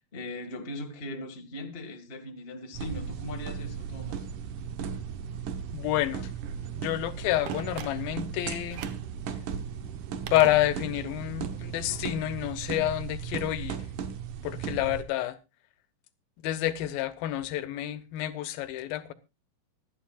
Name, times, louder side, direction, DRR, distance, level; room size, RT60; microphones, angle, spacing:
voice 1, 0.0-4.3, left 1 dB, 25° left, 1.2 m, -39 dB
sound 1, 2.7-15.0, right 7 dB, 70° right, 2.5 m, -36 dB
voice 2, 5.7-6.3 6.8-8.8 10.3-13.8 14.4-15.4 16.4-19.1, left 14 dB, 85° left, 2.7 m, -28 dB
Telephone, 7.5-8.3 8.7-9.1 10.3-11.1 11.4-11.5, right 8 dB, 85° right, 1.2 m, -42 dB
24.5 x 9.3 x 2.4 m
omnidirectional pair, 4.1 m